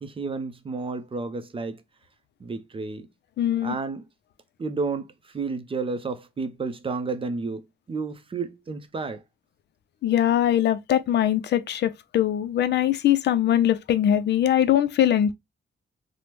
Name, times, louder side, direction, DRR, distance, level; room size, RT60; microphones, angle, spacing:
voice 1, 0.0-1.8 2.4-3.1 3.6-4.1 4.6-9.2, right 4 dB, 30° right, 0.5 m, -31 dB
voice 2, 3.4-3.8 10.0-15.3, left 11 dB, 70° left, 0.4 m, -22 dB
3.3 x 2.1 x 2.8 m
cardioid pair, 90°, 19 cm